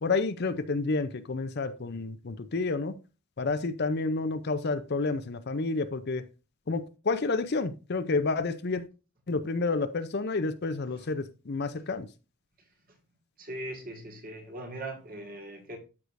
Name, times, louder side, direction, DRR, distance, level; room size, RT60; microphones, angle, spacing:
voice 1, 0.0-2.9 3.4-6.3 6.7-8.8 9.3-12.1, left 3 dB, 45° left, 0.6 m, -30 dB
voice 2, 13.4-15.8, right 1 dB, 40° right, 1.8 m, -40 dB
13.0 x 4.9 x 2.5 m
head